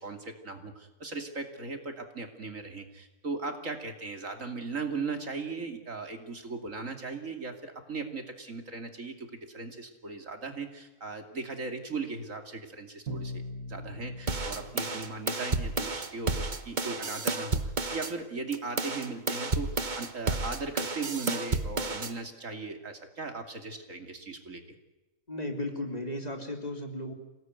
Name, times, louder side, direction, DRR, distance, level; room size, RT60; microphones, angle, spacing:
voice 1, 0.0-13.4 13.7-24.6, right 4 dB, 65° right, 5 dB, 3.0 m, -38 dB
Bowed string instrument, 13.1-15.9, equal, 85° right, 2.0 m, -41 dB
sound 1, 14.3-18.1 18.5-22.1, right 3 dB, 35° right, 1.4 m, -31 dB
voice 2, 25.3-27.1, left 1 dB, 30° left, 3 dB, 3.4 m, -35 dB
27.0 x 18.5 x 9.5 m, 1.1 s
omnidirectional pair, 1.5 m